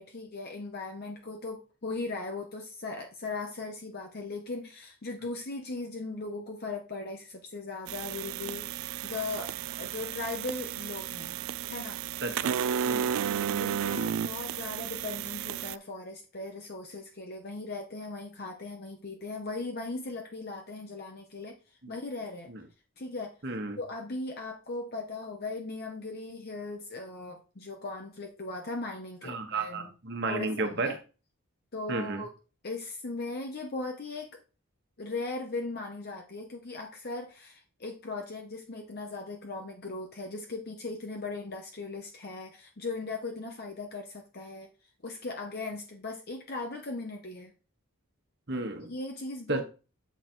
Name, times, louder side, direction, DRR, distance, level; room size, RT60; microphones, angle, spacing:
voice 1, 0.0-12.0 12.5-21.6 21.9-22.5 23.0-23.4 23.8-29.9 30.3-31.0 31.7-32.3 32.6-34.4 35.0-44.7 45.0-47.5 48.9-49.6, left 3 dB, 45° left, 3 dB, 0.8 m, -38 dB
sound 1, 7.9-15.8, right 8 dB, 70° right, 0.3 m, -33 dB
voice 2, 12.2-12.5 12.8-13.1 21.8-21.9 22.5-22.6 23.4-23.8 29.2-31.0 31.9-32.2 48.5-48.9 49.5-49.6, right 3 dB, 50° right, 5 dB, 1.3 m, -32 dB
8.2 x 4.0 x 4.5 m, 0.34 s
head